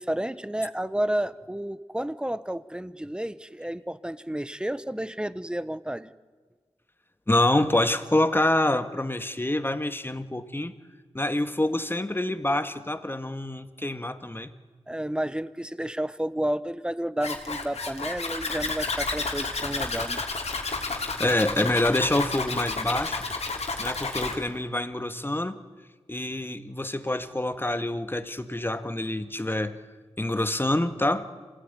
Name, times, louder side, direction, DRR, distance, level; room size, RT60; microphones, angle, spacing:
voice 1, 0.0-6.1 14.9-20.2, right 1 dB, 10° right, 15 dB, 1.0 m, -31 dB
voice 2, 7.3-10.7 11.1-14.5 21.2-23.2 23.8-25.6 26.1-29.8 30.2-31.3, left 1 dB, 20° left, 10 dB, 1.8 m, -26 dB
Zipper (clothing), 17.2-24.4, left 3 dB, 80° left, 3.4 m, -31 dB
26.5 x 18.0 x 9.8 m, 1.5 s
wide cardioid pair, 60°, 11 cm